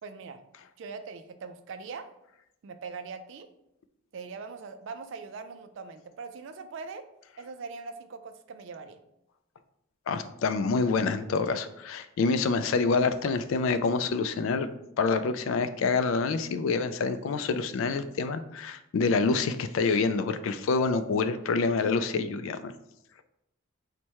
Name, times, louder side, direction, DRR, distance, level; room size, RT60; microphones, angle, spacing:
voice 1, 0.0-0.4 0.8-2.1 2.6-3.5 4.1-7.1 7.4-9.0, right 4 dB, 60° right, 9 dB, 0.4 m, -41 dB
voice 2, 10.1-14.7 15.0-22.7, left 4 dB, 65° left, 11 dB, 0.3 m, -27 dB
4.2 x 2.2 x 4.5 m, 0.83 s
head